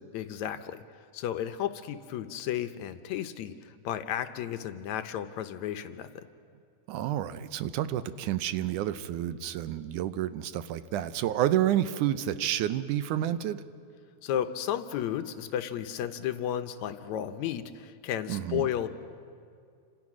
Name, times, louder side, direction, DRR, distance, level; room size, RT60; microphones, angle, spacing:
voice 1, 0.1-0.8 1.1-6.3 14.2-18.9, left 10 dB, 75° left, 10 dB, 2.0 m, -33 dB
voice 2, 6.9-13.6 18.3-18.7, right 12 dB, 80° right, 13 dB, 2.3 m, -29 dB
29.5 x 26.5 x 6.2 m, 2.3 s
omnidirectional pair, 3.6 m